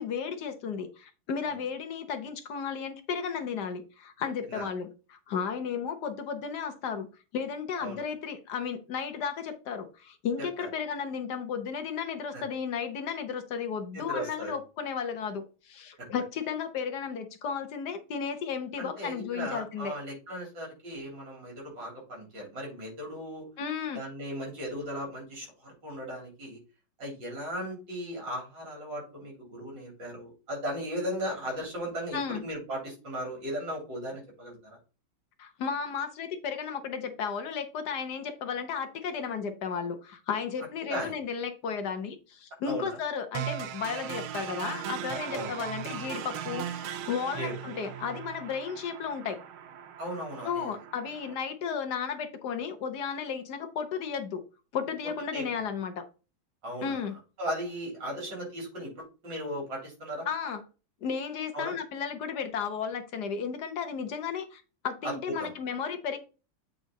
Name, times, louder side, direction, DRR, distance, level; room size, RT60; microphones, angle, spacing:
voice 1, 0.0-7.1 7.3-20.0 23.6-24.0 32.1-32.4 35.4-49.4 50.4-54.4 54.7-56.1 56.8-57.2 60.3-60.6 61.0-66.2, left 6 dB, 60° left, 7 dB, 1.4 m, -34 dB
voice 2, 13.9-14.5 16.0-16.1 18.8-23.5 23.9-26.6 27.0-34.8 40.9-41.1 42.6-43.0 45.3-45.5 47.4-47.5 50.0-50.7 55.3-55.7 56.6-57.0 57.4-60.3 61.5-61.8 65.0-65.1 65.4-65.5, equal, 60° right, -2 dB, 4.2 m, -37 dB
sound 1, 43.3-51.3, right 10 dB, 90° right, 1.6 m, -38 dB
8.4 x 3.9 x 4.1 m, 0.33 s
omnidirectional pair, 2.2 m